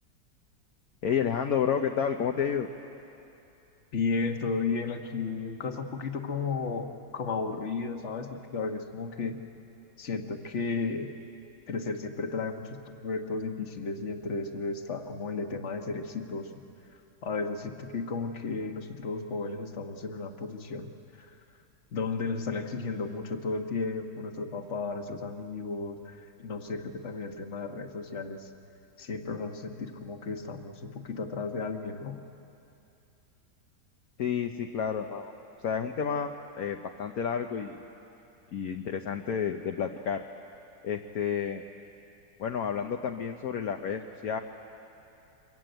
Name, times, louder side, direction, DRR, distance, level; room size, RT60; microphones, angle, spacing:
voice 1, 1.0-2.7 34.2-35.3 35.6-36.3 36.6-37.8 38.5-40.2 40.8-41.6 42.4-44.4, left 7 dB, 60° left, 4 dB, 1.3 m, -30 dB
voice 2, 3.9-9.4 10.0-11.1 11.7-16.6 17.2-20.9 21.2-21.3 21.9-28.5 29.0-32.2, left 4 dB, 45° left, 5 dB, 1.6 m, -34 dB
25.5 x 22.0 x 9.1 m, 2.8 s
omnidirectional pair, 1.9 m